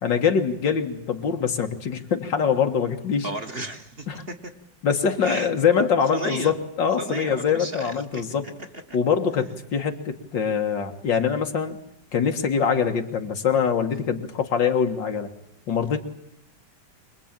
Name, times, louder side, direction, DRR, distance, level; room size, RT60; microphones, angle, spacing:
voice 1, 0.0-3.3 4.1-4.2 4.8-8.4 8.9-11.8 12.1-15.3 15.7-16.0, left 6 dB, 85° left, 4 dB, 2.5 m, -23 dB
voice 2, 3.2-4.5 5.2-5.5 6.1-6.5 7.0-8.5 8.9-9.0, right 1 dB, 35° right, 5 dB, 1.6 m, -33 dB
26.0 x 21.0 x 9.0 m, 0.75 s
omnidirectional pair, 1.9 m